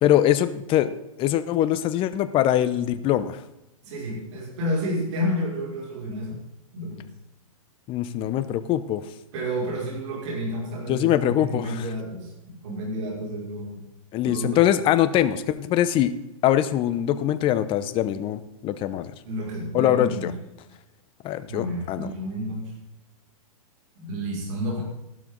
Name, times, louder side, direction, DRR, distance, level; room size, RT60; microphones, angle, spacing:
voice 1, 0.0-3.4 7.9-9.0 10.9-11.8 14.1-16.1 16.4-19.1 19.7-20.3 21.2-22.1, left 12 dB, 30° left, 13 dB, 0.9 m, -23 dB
voice 2, 3.8-6.4 6.7-7.1 9.3-13.8 14.2-14.6 19.2-20.3 21.5-22.7 24.0-24.8, equal, 55° right, -3 dB, 5.7 m, -30 dB
13.5 x 12.0 x 3.9 m, 0.90 s
hypercardioid pair, 125°, 18 cm